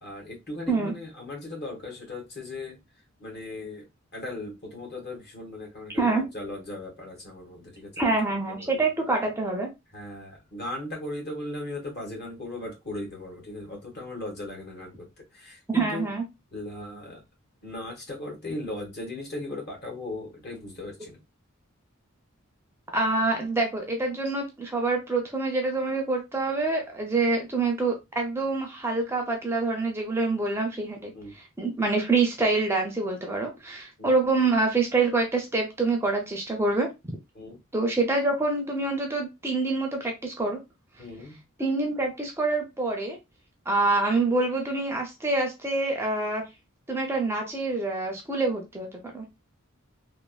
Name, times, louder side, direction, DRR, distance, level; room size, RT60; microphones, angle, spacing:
voice 1, 0.0-2.8 3.2-3.9 4.1-8.1 8.5-8.8 9.9-16.1 16.5-17.2 17.6-21.2 31.1-31.4 34.0-34.1 37.3-37.6 41.0-41.4, left 2 dB, 50° left, 1.2 m, -38 dB
voice 2, 8.0-9.7 15.7-16.2 22.9-36.9 37.7-40.6 41.6-43.2 43.7-46.5 46.9-48.9 49.1-49.2, right 3 dB, 10° right, 0.5 m, -26 dB
3.2 x 2.1 x 2.3 m
head